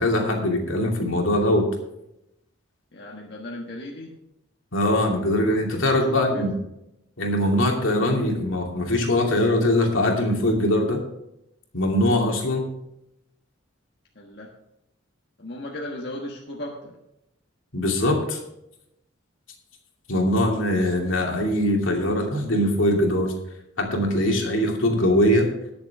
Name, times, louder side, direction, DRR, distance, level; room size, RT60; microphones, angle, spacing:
voice 1, 0.0-1.7 4.7-6.5 7.2-11.0 11.7-12.7 17.7-18.4 20.1-23.3 23.8-25.5, left 1 dB, 75° left, 1 dB, 2.6 m, -22 dB
voice 2, 2.9-4.2 5.7-6.5 14.1-14.5 15.4-16.9, left 1 dB, 55° left, -2 dB, 1.5 m, -36 dB
20.0 x 7.0 x 3.6 m, 0.85 s
head